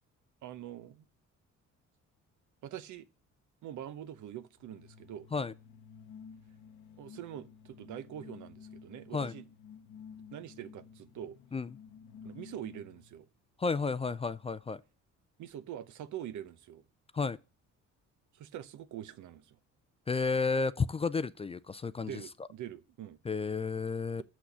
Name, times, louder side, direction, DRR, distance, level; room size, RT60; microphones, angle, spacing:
voice 1, 0.4-1.0 2.6-3.1 3.6-5.3 7.0-9.5 10.3-11.4 12.2-13.3 15.4-16.8 18.3-19.6 22.0-23.2, right 11 dB, 75° right, 0.8 m, -44 dB
sound 1, 4.6-13.2, left 6 dB, 70° left, 0.8 m, -52 dB
voice 2, 13.6-14.8 17.1-17.4 20.1-22.1 23.3-24.2, left 4 dB, 20° left, 0.3 m, -32 dB
6.3 x 6.1 x 6.8 m
cardioid pair, 90°, 30 cm